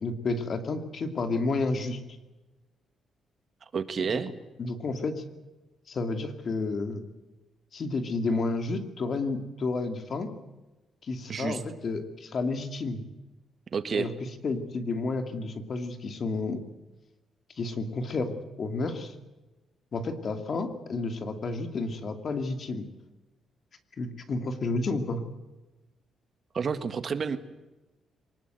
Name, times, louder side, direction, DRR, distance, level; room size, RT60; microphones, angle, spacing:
voice 1, 0.0-2.0 4.1-4.2 4.6-5.2 5.9-7.0 7.7-10.3 11.1-13.0 13.9-14.1 14.4-16.6 17.6-19.1 19.9-22.9 24.0-25.2, left 3 dB, 45° left, 7 dB, 2.6 m, -31 dB
voice 2, 3.6-4.3 11.3-11.6 13.7-14.1 26.5-27.4, right 6 dB, 45° right, 10 dB, 1.6 m, -30 dB
23.5 x 20.0 x 8.0 m, 1.1 s
cardioid pair, 120°, 0 cm